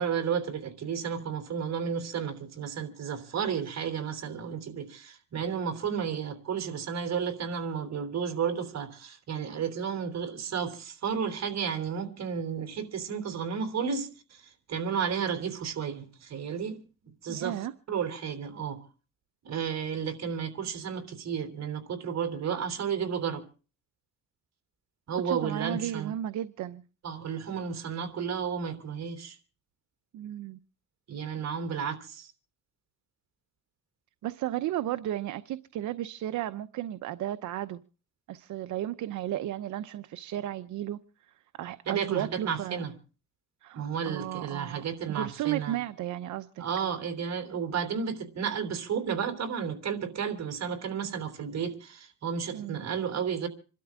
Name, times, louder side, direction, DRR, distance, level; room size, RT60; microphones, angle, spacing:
voice 1, 0.0-14.4 14.7-16.8 17.0-17.5 17.9-18.8 19.4-23.4 25.1-26.2 27.0-29.4 31.1-32.3 41.8-42.9 43.7-45.8 46.6-53.5, right 7 dB, 60° right, 3.3 m, -32 dB
voice 2, 17.3-17.7 25.2-26.8 30.1-30.6 34.2-37.8 38.3-41.0 41.5-42.8 43.6-46.7 52.5-52.8, right 12 dB, 75° right, 0.8 m, -34 dB
27.0 x 12.5 x 3.6 m
cardioid pair, 90°, 30 cm